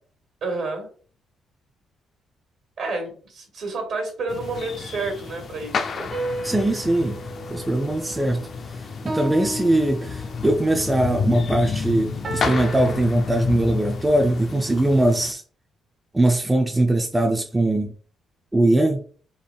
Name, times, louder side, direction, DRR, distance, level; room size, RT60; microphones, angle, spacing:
voice 1, 0.4-0.9 2.8-6.1, right 3 dB, 60° right, 3 dB, 1.8 m, -30 dB
sound 1, 4.3-15.3, left 5 dB, 50° left, 0.5 m, -30 dB
sound 2, 6.1-8.5 9.1-10.6 12.2-12.9, right 1 dB, 45° right, 1.0 m, -32 dB
voice 2, 6.4-7.2 7.5-15.4 16.1-17.9 18.5-19.0, right 1 dB, 10° right, 4 dB, 0.5 m, -21 dB
3.9 x 3.5 x 2.3 m, 0.42 s
cardioid pair, 90°, 0 cm